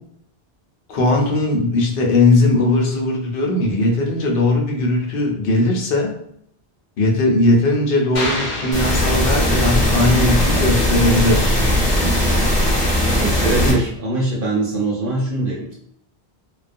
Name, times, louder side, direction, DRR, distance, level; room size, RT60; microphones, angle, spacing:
voice 1, 0.9-6.2 7.0-11.6 12.0-12.4, left 2 dB, 65° left, 1 dB, 0.8 m, -18 dB
sound 1, 8.1-9.9, left 1 dB, 85° left, 0.9 m, -28 dB
sound 2, 8.7-13.7, left 1 dB, 10° left, 0.7 m, -18 dB
voice 2, 13.2-15.7, right 2 dB, 60° right, -5 dB, 1.0 m, -22 dB
2.3 x 2.2 x 2.5 m, 0.69 s
omnidirectional pair, 1.1 m